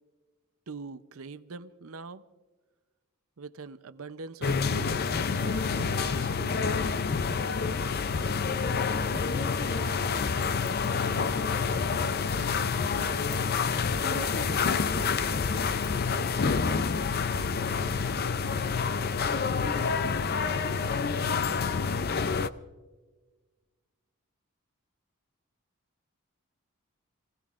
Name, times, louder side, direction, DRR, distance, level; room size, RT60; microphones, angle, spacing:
voice 1, 0.7-2.2 3.4-6.7, right 4 dB, 70° right, 12 dB, 0.7 m, -43 dB
sound 1, 4.4-22.5, left 5 dB, 45° left, 0.5 m, -28 dB
voice 2, 9.1-11.6 12.3-13.7 14.0-18.3, left 1 dB, 70° left, 3 dB, 2.1 m, -44 dB
28.5 x 17.5 x 2.5 m, 1.3 s
head